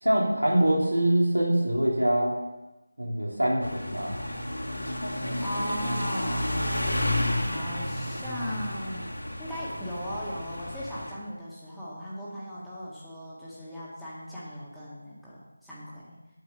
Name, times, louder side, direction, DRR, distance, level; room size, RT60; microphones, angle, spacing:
voice 1, 0.0-2.4 3.0-4.2, right 1 dB, 80° right, -3 dB, 3.2 m, -24 dB
sound 1, 3.6-11.1, left 1 dB, 80° left, 3.0 m, -31 dB
voice 2, 5.1-6.8 7.3-9.1 9.4-16.2, equal, ahead, -12 dB, 1.7 m, -38 dB
9.2 x 6.7 x 6.9 m, 1.0 s
figure-of-eight pair, 165°, 0 cm